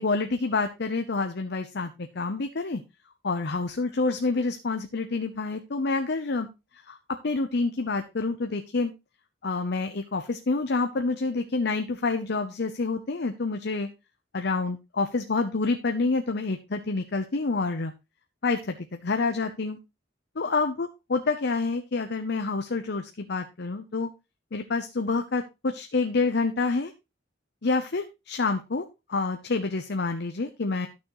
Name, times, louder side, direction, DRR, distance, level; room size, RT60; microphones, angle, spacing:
voice 1, 0.0-2.8 3.2-6.5 6.9-7.0 7.2-8.9 9.4-13.9 14.3-17.9 18.4-19.8 20.4-24.1 24.5-26.9 27.6-30.9, left 3 dB, 60° left, 7 dB, 0.7 m, -28 dB
12.0 x 6.3 x 3.1 m, 0.25 s
head